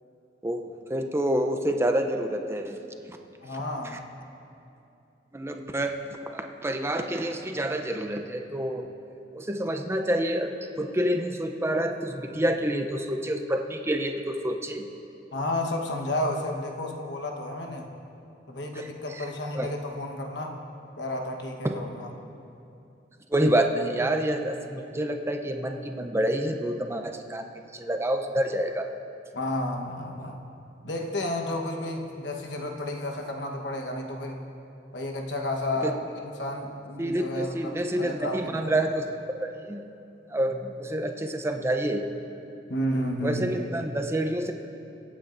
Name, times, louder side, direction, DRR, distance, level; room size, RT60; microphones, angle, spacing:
voice 1, 0.4-2.8 3.1-3.2 5.3-5.9 6.3-8.9 9.3-14.9 18.8-18.9 19.5-19.7 21.6-21.7 23.3-28.9 35.8-35.9 37.0-39.1 39.4-39.8 40.3-42.0 43.2-44.5, right 1 dB, 15° right, 5 dB, 0.6 m, -28 dB
voice 2, 3.4-4.1 15.3-17.9 18.5-20.6 21.0-22.1 29.3-30.4 30.8-34.4 34.9-38.9 42.7-43.5, left 1 dB, 70° left, 2 dB, 1.2 m, -32 dB
23.5 x 8.7 x 2.6 m, 2.8 s
head